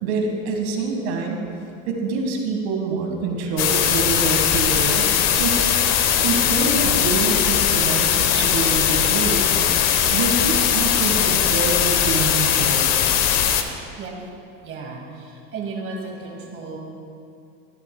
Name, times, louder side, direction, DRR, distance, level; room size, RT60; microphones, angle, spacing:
voice 1, 0.0-1.4 1.9-5.6 6.2-9.6 10.1-12.8, right 4 dB, 80° right, 2 dB, 1.7 m, -26 dB
sound 1, 3.6-13.6, left 9 dB, 55° left, 0.8 m, -19 dB
voice 2, 14.6-16.8, right 4 dB, 40° right, -1 dB, 2.1 m, -34 dB
13.0 x 10.5 x 2.2 m, 2.5 s
supercardioid pair, 105°, 31 cm